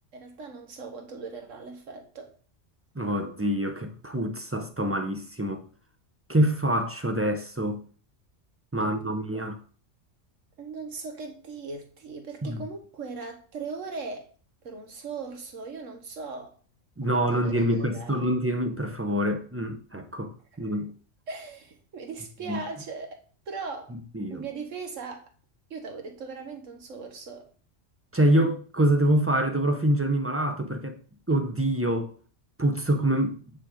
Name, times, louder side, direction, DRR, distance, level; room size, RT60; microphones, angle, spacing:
voice 1, 0.1-2.3 8.8-8.9 9.3-9.4 10.6-14.3 14.6-16.5 17.0-18.2 20.7-20.8 21.3-23.2 23.5-24.0 24.3-25.3 25.7-27.5, right 4 dB, 85° right, 1.7 m, -39 dB
voice 2, 2.9-5.7 6.3-7.8 8.7-9.6 12.4-12.6 17.0-20.9 22.5-22.6 23.9-24.4 28.1-31.0 31.3-32.1 32.6-33.3, right 1 dB, 15° right, 0.5 m, -26 dB
9.0 x 3.7 x 5.0 m
omnidirectional pair, 1.3 m